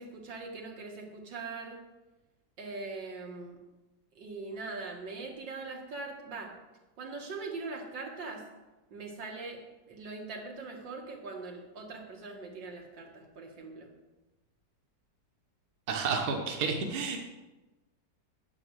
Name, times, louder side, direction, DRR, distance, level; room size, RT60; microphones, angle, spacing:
voice 1, 0.0-1.8 2.6-3.6 4.2-6.5 7.0-8.4 8.9-9.6 9.9-13.9, right 3 dB, 85° right, 0 dB, 2.4 m, -41 dB
voice 2, 15.9-17.2, right 5 dB, 65° right, 1 dB, 1.7 m, -30 dB
9.7 x 8.2 x 6.3 m, 1.1 s
omnidirectional pair, 1.9 m